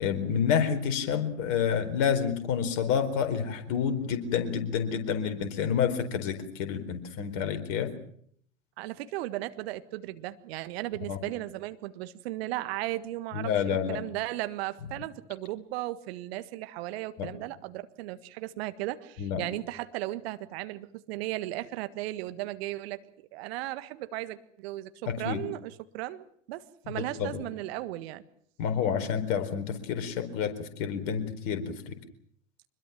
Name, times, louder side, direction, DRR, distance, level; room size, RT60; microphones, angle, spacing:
voice 1, 0.0-7.9 11.1-11.2 13.3-14.0 17.2-17.3 19.2-19.4 25.1-25.4 26.9-27.4 28.6-32.0, left 7 dB, 50° left, 8 dB, 4.4 m, -29 dB
voice 2, 8.8-23.0 23.3-28.2, right 16 dB, 55° right, 12 dB, 1.6 m, -36 dB
25.5 x 21.5 x 7.4 m, 0.64 s
figure-of-eight pair, 90°, 38 cm